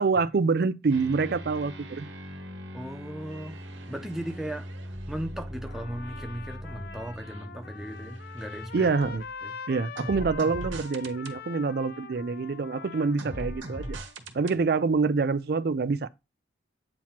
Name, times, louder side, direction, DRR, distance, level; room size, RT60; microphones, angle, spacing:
voice 1, 0.0-2.1 8.7-9.2 9.7-14.0 14.3-16.1, right 4 dB, 55° right, 0.4 m, -26 dB
sound 1, 0.9-9.4 10.0-11.4 13.2-14.6, right 1 dB, 80° right, 1.3 m, -40 dB
voice 2, 2.7-3.6 3.9-4.7 5.1-9.0 9.4-9.5, equal, 5° right, 0.8 m, -37 dB
Trumpet, 5.7-14.1, left 5 dB, 55° left, 0.4 m, -44 dB
8.7 x 3.1 x 5.7 m
head